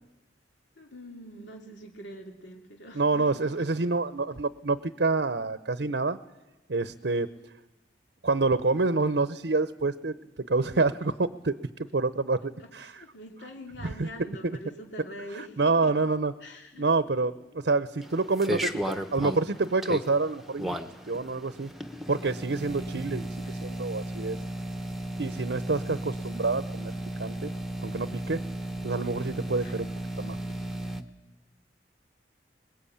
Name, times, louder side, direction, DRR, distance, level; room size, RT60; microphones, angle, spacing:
voice 1, 0.8-3.6 12.6-15.9 16.4-16.9 22.6-22.9 29.5-29.8 30.5-30.6, equal, 80° left, 1 dB, 2.6 m, -45 dB
voice 2, 3.0-6.2 6.7-7.3 8.2-12.9 13.8-14.1 15.6-16.3 16.8-20.8 21.1-21.7 22.1-23.3 23.6-24.4 25.2-26.9 27.2-27.5 27.8-28.4 28.8-29.9 30.2-30.4, right 3 dB, 70° right, 12 dB, 0.8 m, -27 dB
fish water pump, 18.0-31.0, right 1 dB, ahead, 1.0 m, -35 dB
25.0 x 21.0 x 8.7 m, 1.0 s
head